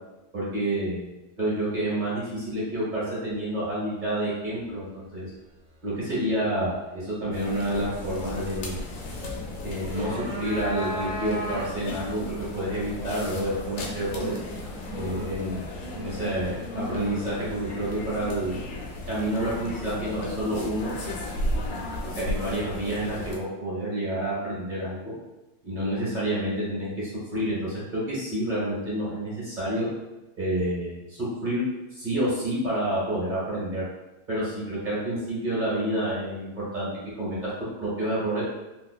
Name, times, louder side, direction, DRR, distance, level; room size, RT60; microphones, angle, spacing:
voice 1, 0.3-1.1 1.4-5.3 5.8-8.7 9.6-14.4 14.9-18.5 19.1-20.9 21.6-21.8 22.1-25.1 25.6-29.9 30.3-31.6 31.9-33.8 34.3-36.9 37.2-37.5 37.8-38.4, right 1 dB, 30° right, -8 dB, 1.2 m, -29 dB
Atmos int Airport Venice Hall, 7.3-23.4, left 1 dB, 85° left, 1.4 m, -35 dB
sound 1, 9.7-12.0, left 1 dB, 75° right, 1.7 m, -34 dB
3.8 x 2.8 x 2.3 m, 1.0 s
omnidirectional pair, 2.0 m